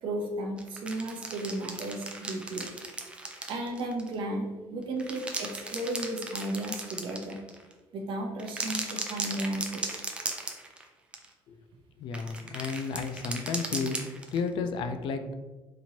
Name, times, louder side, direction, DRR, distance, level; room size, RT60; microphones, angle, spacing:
voice 1, 0.0-2.7 3.5-7.4 7.9-10.0, right 1 dB, 60° right, 1 dB, 0.7 m, -34 dB
sound 1, 0.6-4.1 4.8-7.7 8.4-10.9 11.1-11.3 12.1-14.5, right 2 dB, 10° right, 0.4 m, -37 dB
voice 2, 12.0-14.0 14.3-15.3, left 5 dB, 60° left, 8 dB, 0.3 m, -32 dB
4.2 x 3.0 x 2.8 m, 1.2 s
cardioid pair, 165°, 9 cm